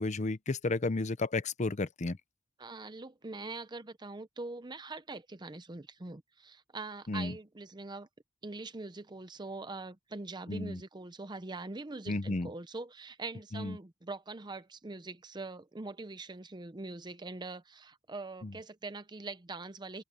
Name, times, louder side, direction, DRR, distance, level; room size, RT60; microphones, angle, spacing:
voice 1, 0.0-2.2 7.1-7.3 10.5-10.8 12.1-12.5 13.5-13.8 18.4-18.5, left 2 dB, 40° left, 0.7 m, -32 dB
voice 2, 2.6-8.1 8.4-20.0, right 3 dB, 25° right, 0.7 m, -43 dB
open air
head